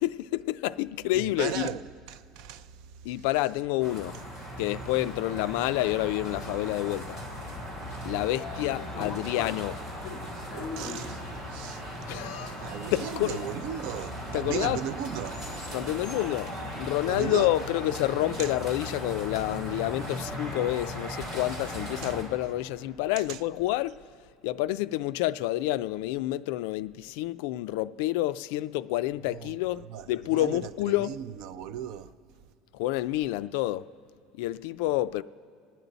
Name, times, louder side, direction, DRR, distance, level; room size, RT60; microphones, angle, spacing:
voice 1, 0.0-1.8 3.0-4.2 4.6-7.2 8.0-9.8 12.1-13.5 14.3-14.8 15.7-16.5 16.8-24.0 24.4-31.2 32.7-33.9 34.3-35.2, left 16 dB, 70° left, 0.3 m, -29 dB
voice 2, 1.1-2.7 10.5-11.2 11.5-11.8 12.6-15.4 17.1-17.5 18.4-18.5 22.0-22.1 23.3-23.4 29.4-29.5 29.9-32.1, right 10 dB, 55° right, 0.5 m, -36 dB
sound 1, 3.8-22.2, equal, 10° right, 3.0 m, -38 dB
Sliding door, 8.2-17.9, left 4 dB, 15° left, 1.7 m, -45 dB
26.0 x 10.0 x 4.0 m
cardioid pair, 175°, 0 cm